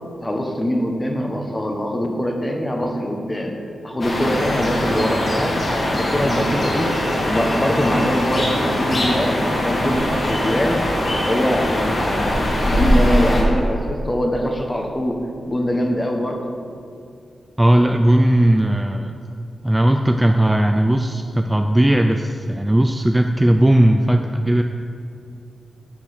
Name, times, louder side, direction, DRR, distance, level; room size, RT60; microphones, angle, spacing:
voice 1, 0.2-3.6 3.8-7.0 7.2-10.8 11.3-16.6, equal, 20° left, 2 dB, 1.4 m, -23 dB
sound 1, 4.0-13.4, left 1 dB, 50° left, 2.6 m, -21 dB
voice 2, 17.6-19.2 19.6-24.6, right 1 dB, 10° right, 5 dB, 0.5 m, -17 dB
10.0 x 6.2 x 6.5 m, 2.4 s
cardioid pair, 85°, 0 cm